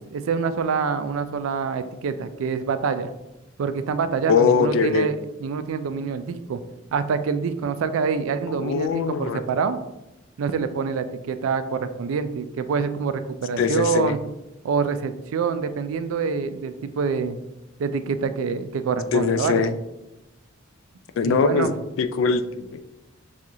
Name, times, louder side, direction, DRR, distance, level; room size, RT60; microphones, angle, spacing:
voice 1, 0.1-3.1 3.6-5.2 5.4-6.6 6.9-9.8 10.4-14.2 14.6-17.4 17.8-19.7 21.2-21.7, right 5 dB, 85° right, 11 dB, 0.3 m, -26 dB
voice 2, 4.3-5.2 8.5-9.4 13.6-14.2 19.1-19.8 21.2-21.7 22.0-22.8, left 5 dB, 70° left, 10 dB, 0.3 m, -22 dB
6.0 x 2.4 x 2.8 m, 0.97 s
head